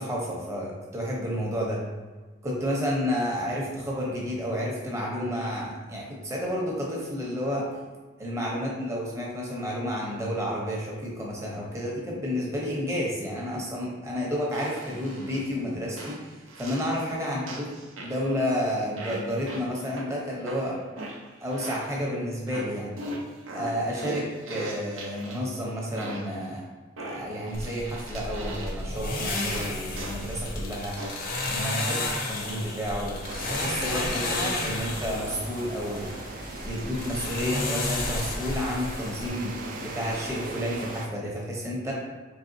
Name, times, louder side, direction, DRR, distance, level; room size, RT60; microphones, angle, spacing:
voice 1, 0.0-1.8 2.4-7.7 8.2-16.2 16.6-17.7 18.0-20.8 21.4-22.9 23.5-26.6 27.0-30.9 31.5-33.2 33.5-36.0 36.6-41.9, equal, 15° right, -3 dB, 0.8 m, -31 dB
sound 1, 14.5-15.5 16.0-17.1 17.5-18.4 19.0-20.1 20.5-22.1 22.5-25.6 26.0-26.4 27.0-29.0 29.5-30.4 31.0-31.4, right 1 dB, 90° right, 0.7 m, -39 dB
sound 2, 27.5-39.3, left 2 dB, 50° left, 0.6 m, -32 dB
sound 3, 33.2-41.1, right 2 dB, 45° right, 0.4 m, -39 dB
4.0 x 3.2 x 2.7 m, 1.3 s
head